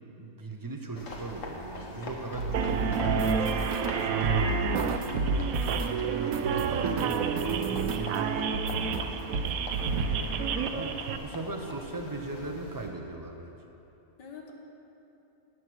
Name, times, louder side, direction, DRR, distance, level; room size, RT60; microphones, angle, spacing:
voice 1, 0.2-4.4 5.1-9.0 9.9-10.4 10.7-13.5, right 3 dB, 25° right, 3 dB, 0.4 m, -39 dB
sound 1, 0.9-12.9, left 2 dB, 50° left, 1.6 m, -43 dB
sound 2, 2.3-8.2 8.5-9.0 9.3-10.2, right 2 dB, 90° right, 1.5 m, -32 dB
sound 3, 2.5-11.2, right 7 dB, 65° right, 0.9 m, -30 dB
voice 2, 4.7-5.0 9.4-10.6 14.2-14.5, left 3 dB, 80° left, 1 dB, 1.9 m, -49 dB
18.0 x 6.3 x 6.3 m, 2.9 s
omnidirectional pair, 1.8 m